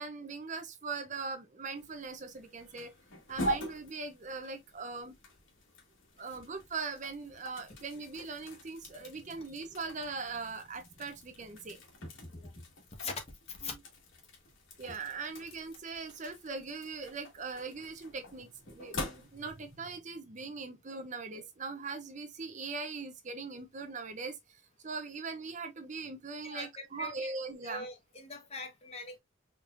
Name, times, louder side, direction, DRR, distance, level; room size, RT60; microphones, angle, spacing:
voice 1, 0.0-2.9 3.3-5.2 6.2-11.8 14.8-27.9, right 4 dB, 40° right, 0.7 m, -41 dB
sound 1, 1.7-19.8, equal, 85° left, 1.9 m, -44 dB
voice 2, 26.4-27.3 27.6-29.2, left 3 dB, 30° left, 1.3 m, -42 dB
4.6 x 3.6 x 2.5 m
head